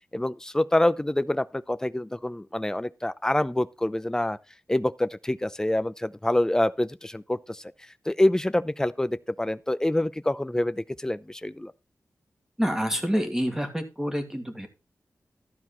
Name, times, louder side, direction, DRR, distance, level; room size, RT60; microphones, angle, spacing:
voice 1, 0.1-4.4 4.7-7.6 8.1-11.7, left 1 dB, 10° left, 0.6 m, -26 dB
voice 2, 12.6-14.7, equal, 10° right, 2.4 m, -27 dB
13.0 x 4.6 x 5.7 m
wide cardioid pair, 85°, 5 cm